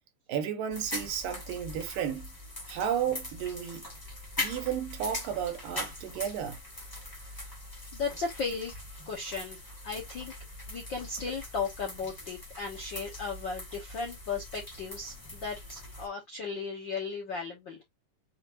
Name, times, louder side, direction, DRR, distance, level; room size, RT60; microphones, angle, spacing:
voice 1, 0.3-2.3 2.7-3.9 4.4-6.6, right 9 dB, 85° right, 2.7 m, -33 dB
sound 1, 0.7-16.1, left 2 dB, 20° left, 0.6 m, -42 dB
voice 2, 7.9-8.7 9.1-10.3 10.7-17.8, left 5 dB, 65° left, 1.1 m, -36 dB
7.1 x 2.4 x 2.9 m
omnidirectional pair, 3.9 m